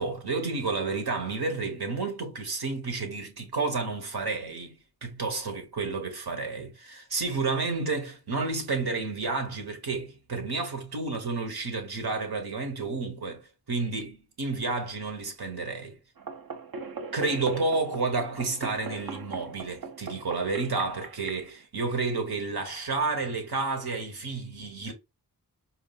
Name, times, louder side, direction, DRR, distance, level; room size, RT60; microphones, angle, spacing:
voice 1, 0.0-16.0 17.1-24.9, right 3 dB, 80° right, 1.1 m, -31 dB
sound 1, 16.2-21.5, right 5 dB, 65° right, 0.6 m, -40 dB
4.3 x 2.5 x 2.3 m
wide cardioid pair, 75°, 37 cm